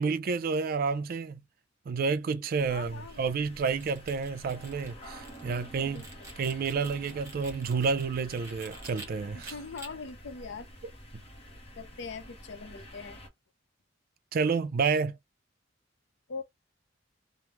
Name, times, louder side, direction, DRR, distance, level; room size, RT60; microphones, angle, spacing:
voice 1, 0.0-1.3 1.9-6.0 6.4-9.5 14.3-15.2, right 5 dB, 50° right, 0.4 m, -30 dB
voice 2, 2.6-3.3 5.5-6.1 9.3-10.7 11.8-13.2 16.3-16.4, left 4 dB, 65° left, 0.5 m, -42 dB
sound 1, 2.6-13.3, equal, 30° left, 1.0 m, -49 dB
sound 2, 3.6-9.1 9.4-9.9, right 2 dB, 15° right, 1.3 m, -48 dB
2.9 x 2.0 x 3.4 m
head